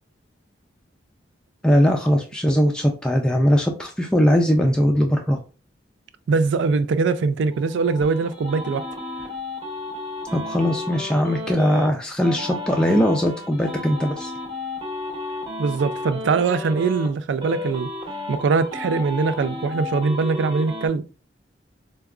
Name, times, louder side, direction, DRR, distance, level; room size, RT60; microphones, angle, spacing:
voice 1, 1.6-5.4 10.3-14.3, equal, 5° left, 0.3 m, -20 dB
voice 2, 6.3-8.8 15.6-17.9 18.3-21.0, right 4 dB, 80° right, 0.3 m, -22 dB
sound 1, 7.5-11.9 12.2-17.1 17.4-20.9, left 2 dB, 30° right, 0.8 m, -33 dB
4.7 x 2.2 x 2.3 m
head